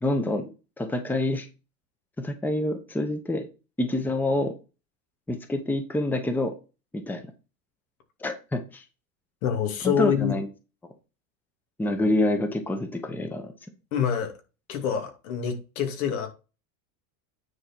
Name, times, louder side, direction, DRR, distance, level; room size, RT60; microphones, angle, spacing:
voice 1, 0.0-0.5 0.8-1.5 2.2-3.5 3.8-4.5 5.3-6.5 6.9-7.2 8.2-8.8 9.8-10.5 11.8-13.5, left 1 dB, 5° left, 0.9 m, -27 dB
voice 2, 9.4-10.3 13.9-14.3 14.7-16.3, left 8 dB, 75° left, 2.6 m, -26 dB
9.5 x 4.4 x 4.5 m
supercardioid pair, 140°, 43 cm